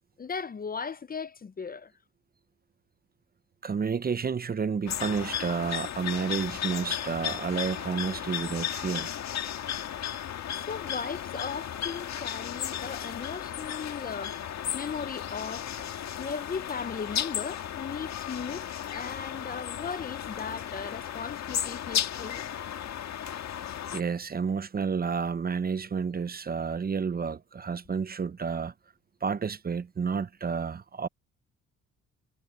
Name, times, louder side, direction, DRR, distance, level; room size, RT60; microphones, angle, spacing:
voice 1, 0.2-1.9 10.6-14.4 14.7-15.7 16.2-22.4, left 5 dB, 30° left, 0.7 m, -37 dB
voice 2, 3.6-9.1 23.9-28.7 29.2-31.1, right 6 dB, 30° right, 0.8 m, -30 dB
sound 1, 4.9-24.0, left 10 dB, 65° left, 1.7 m, -35 dB
cardioid pair, 90°, 30 cm